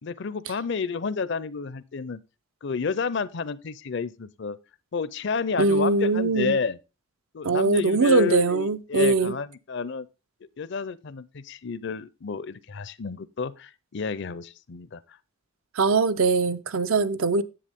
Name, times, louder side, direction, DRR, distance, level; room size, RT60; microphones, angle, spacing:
voice 1, 0.0-2.2 2.6-4.6 4.9-6.8 7.3-10.1 10.6-15.0, left 5 dB, 55° left, 0.5 m, -30 dB
voice 2, 5.6-6.6 7.4-9.4 15.8-17.4, right 3 dB, 70° right, 0.6 m, -22 dB
10.0 x 8.1 x 3.5 m
head